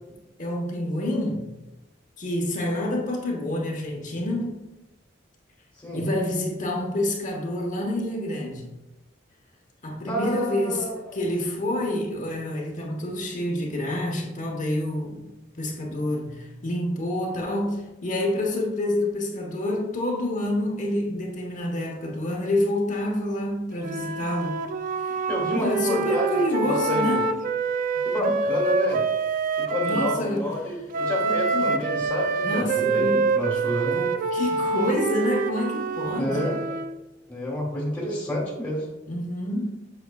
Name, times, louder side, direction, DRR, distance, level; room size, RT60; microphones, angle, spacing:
voice 1, 0.4-1.5 2.2-4.6 5.9-8.7 9.8-15.3 15.6-24.6 25.0-25.2 25.4-27.3 28.2-28.3 29.8-30.6 31.2-31.8 32.4-33.4 33.9-36.5 39.1-39.8, left 1 dB, 45° left, -1 dB, 1.1 m, -28 dB
voice 2, 10.1-11.2 25.3-26.4 26.6-27.2 28.0-29.0 29.6-34.0 36.0-36.6 37.3-38.9, equal, 10° left, -4 dB, 1.6 m, -29 dB
Wind instrument woodwind instrument, 23.8-30.2 30.9-37.0, right 4 dB, 45° right, 0.3 m, -26 dB
8.2 x 5.7 x 2.3 m, 0.99 s
head